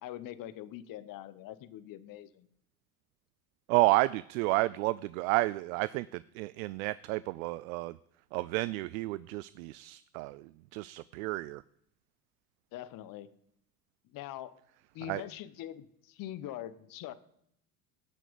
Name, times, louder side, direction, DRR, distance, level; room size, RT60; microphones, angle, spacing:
voice 1, 0.0-2.5 12.7-13.3 14.1-14.5 14.9-17.1, left 13 dB, 45° left, 15 dB, 1.0 m, -43 dB
voice 2, 3.7-8.0 8.3-11.6 15.1-15.2, right 20 dB, 60° right, 18 dB, 0.5 m, -31 dB
18.0 x 6.0 x 5.2 m, 0.72 s
hypercardioid pair, 80°, 47 cm